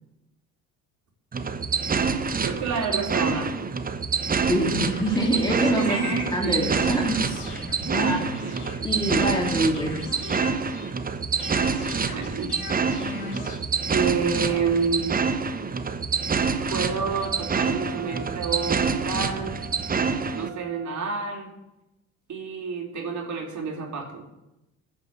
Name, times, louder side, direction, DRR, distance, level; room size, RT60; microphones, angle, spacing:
sound 1, 1.3-20.5, right 5 dB, 20° right, 1.0 m, -27 dB
voice 1, 2.4-3.7 5.7-6.8 7.8-8.7 12.1-12.6 13.9-15.1 16.7-19.6 20.4-21.5 22.3-24.2, right 5 dB, 40° right, 0 dB, 3.9 m, -29 dB
voice 2, 4.5-7.5 7.9-8.2 8.8-10.1, right 1 dB, 10° left, 1 dB, 2.6 m, -25 dB
sound 2, 4.8-11.0 11.4-13.6, left 4 dB, 80° left, 2.0 m, -40 dB
Wind instrument woodwind instrument, 16.6-21.0, right 13 dB, 75° right, 3.6 m, -43 dB
15.5 x 6.1 x 7.8 m, 0.93 s
figure-of-eight pair, 60°, 44 cm